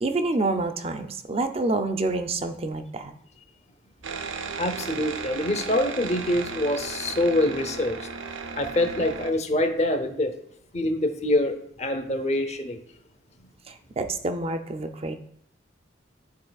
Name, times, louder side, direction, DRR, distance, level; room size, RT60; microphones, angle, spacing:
voice 1, 0.0-3.1 13.7-15.2, right 2 dB, 30° right, 0.5 m, -27 dB
sound 1, 4.0-9.3, right 5 dB, 85° right, 0.6 m, -35 dB
voice 2, 4.6-8.0 8.6-10.3 10.7-12.8, left 1 dB, 35° left, 0.7 m, -25 dB
12.0 x 4.1 x 2.3 m
head